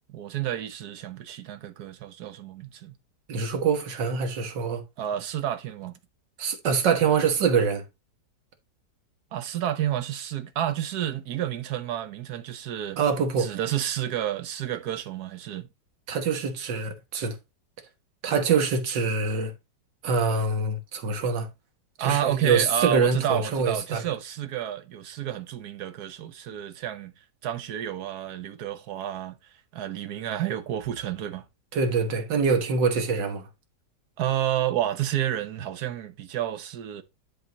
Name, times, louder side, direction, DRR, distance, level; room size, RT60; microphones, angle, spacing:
voice 1, 0.0-2.9 5.0-5.9 9.3-13.0 13.4-15.7 22.0-27.1 27.4-29.4 29.7-31.4 34.2-37.0, right 11 dB, 65° right, 1.4 m, -30 dB
voice 2, 3.3-4.8 6.4-7.8 13.0-13.6 16.1-17.4 18.2-19.5 20.0-21.5 22.0-24.0 31.7-33.5, right 5 dB, 85° right, 2.0 m, -25 dB
10.5 x 3.7 x 4.0 m
omnidirectional pair, 1.9 m